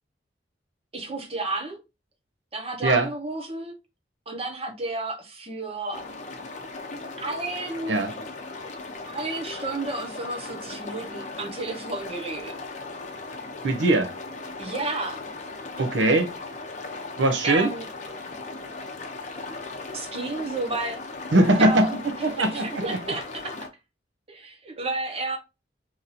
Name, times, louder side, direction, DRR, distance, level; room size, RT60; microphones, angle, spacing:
voice 1, 0.9-1.8 2.5-3.7 4.3-6.0 7.2-8.0 9.0-12.5 14.6-15.2 17.4-17.8 19.9-21.0 21.6-21.9 22.4-23.5 24.3-25.4, right 2 dB, 35° right, 0.9 m, -31 dB
sound 1, 5.9-23.7, left 3 dB, 40° left, 0.6 m, -38 dB
voice 2, 13.6-14.1 15.8-16.3 17.2-17.7 21.3-23.0, right 2 dB, 85° right, 0.7 m, -21 dB
2.9 x 2.7 x 3.9 m
head